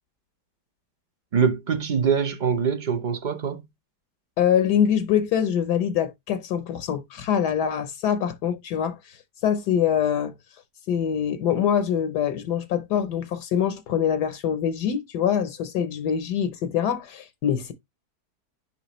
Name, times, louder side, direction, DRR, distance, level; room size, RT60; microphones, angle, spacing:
voice 1, 1.3-3.6, right 6 dB, 40° right, 0.7 m, -23 dB
voice 2, 4.4-9.2 9.4-10.3 10.9-17.7, left 9 dB, 75° left, 1.3 m, -24 dB
10.0 x 3.4 x 3.0 m
omnidirectional pair, 1.8 m